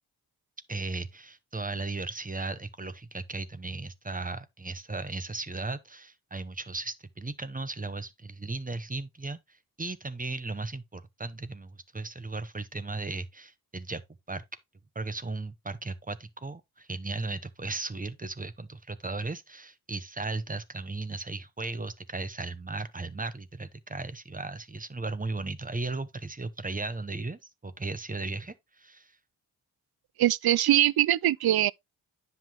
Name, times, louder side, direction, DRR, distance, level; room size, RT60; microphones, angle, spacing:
voice 1, 0.7-14.0 14.3-14.4 14.9-29.1, right 3 dB, 20° right, 1.0 m, -36 dB
voice 2, 30.2-31.7, right 13 dB, 75° right, 0.5 m, -22 dB
10.0 x 5.7 x 2.9 m
wide cardioid pair, 95°, 38 cm